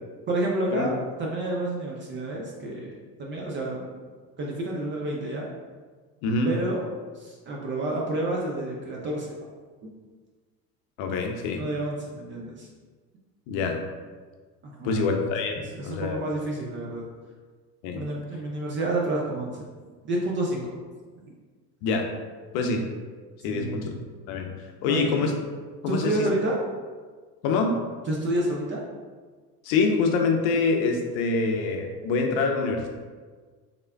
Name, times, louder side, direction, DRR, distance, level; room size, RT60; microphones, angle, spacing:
voice 1, 0.3-3.9 4.4-5.5 6.4-6.8 7.1-9.4 9.8-9.9 11.6-12.7 14.6-15.0 15.5-17.1 17.9-19.6 20.0-20.8 23.5-23.9 24.9-25.3 25.9-26.6 28.1-28.8, right 1 dB, 25° right, -2 dB, 0.4 m, -29 dB
voice 2, 11.0-11.6 13.5-13.8 14.8-16.3 17.8-18.0 21.8-22.1 22.5-22.8 23.4-23.9 24.3-24.5 24.8-25.3 25.8-26.3 27.4-27.8 29.6-32.9, left 4 dB, 55° left, 3 dB, 0.6 m, -25 dB
3.6 x 3.3 x 2.2 m, 1.5 s
hypercardioid pair, 80°, 50 cm